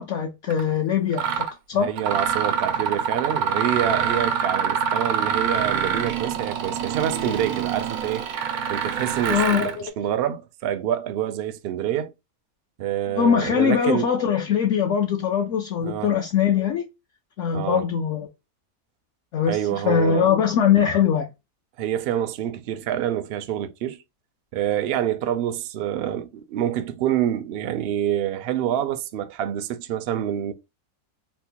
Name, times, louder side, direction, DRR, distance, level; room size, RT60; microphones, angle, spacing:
voice 1, 0.0-1.9 9.3-9.9 13.1-16.9 17.4-18.3 19.3-21.3, left 8 dB, 70° left, 0.9 m, -22 dB
Mechanisms, 0.5-0.6 1.1-1.5 2.0-9.8, right 7 dB, 90° right, 1.1 m, -25 dB
voice 2, 1.7-8.2 8.7-12.1 12.8-14.1 15.8-16.1 17.5-17.8 19.5-20.3 21.8-24.0 24.5-30.5, right 11 dB, 75° right, 0.5 m, -27 dB
4.2 x 2.1 x 2.8 m
omnidirectional pair, 1.5 m